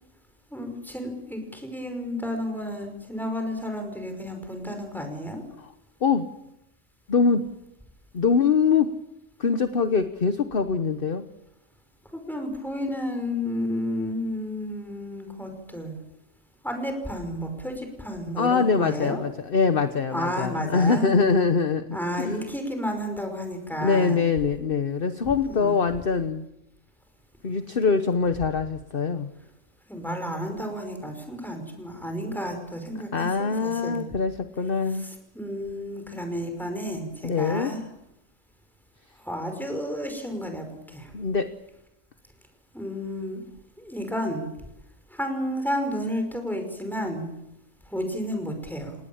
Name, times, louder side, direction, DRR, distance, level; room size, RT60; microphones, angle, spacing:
voice 1, 0.5-5.4 12.1-16.0 16.6-19.2 20.1-21.1 21.9-24.2 25.5-25.8 29.9-34.0 35.0-37.8 39.2-41.1 42.7-43.4 43.8-44.5 45.1-47.3 47.9-48.9, equal, ahead, 5 dB, 5.6 m, -31 dB
voice 2, 7.1-7.4 8.1-8.9 9.4-11.2 18.4-22.4 23.8-26.4 27.4-29.3 33.1-35.1 37.2-37.7 41.1-41.5, left 5 dB, 45° left, 10 dB, 1.2 m, -23 dB
29.0 x 19.0 x 7.2 m, 0.87 s
omnidirectional pair, 1.4 m